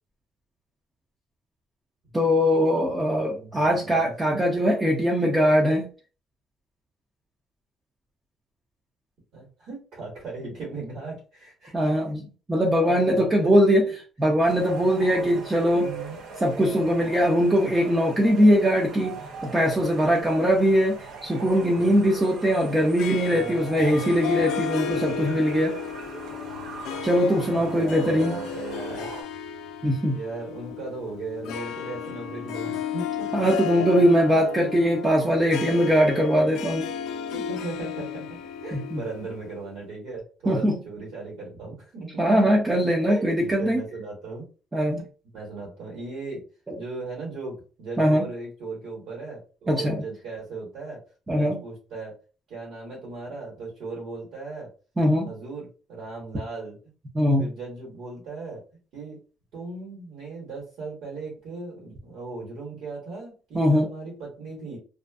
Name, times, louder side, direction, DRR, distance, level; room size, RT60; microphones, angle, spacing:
voice 1, 2.1-5.9 11.7-13.9 14.2-15.9 16.4-25.8 27.0-28.3 29.8-30.2 33.3-36.9 38.7-39.0 40.5-40.8 42.2-43.8 44.7-45.0 46.7-46.8 48.0-48.2 49.7-50.0 51.3-51.6 55.0-55.3 57.1-57.4 63.5-63.9, equal, 15° right, -1 dB, 0.4 m, -21 dB
voice 2, 3.0-4.0 9.3-11.9 12.8-13.5 14.8-14.9 15.2-15.4 15.7-16.2 21.7-22.0 23.3-23.6 25.1-25.3 27.4-29.1 30.1-33.3 33.8-34.0 35.4-35.5 36.8-42.5 43.1-44.5 45.3-46.4 46.8-51.0 51.3-52.1 52.5-54.7 55.3-56.8 57.4-58.6 58.9-59.2 59.5-64.8, right 3 dB, 70° right, -4 dB, 1.2 m, -37 dB
sound 1, 14.4-29.2, right 4 dB, 85° right, 0.6 m, -39 dB
Harp, 23.0-39.7, left 8 dB, 85° left, 0.3 m, -34 dB
2.4 x 2.4 x 2.3 m, 0.36 s
cardioid pair, 165°, 0 cm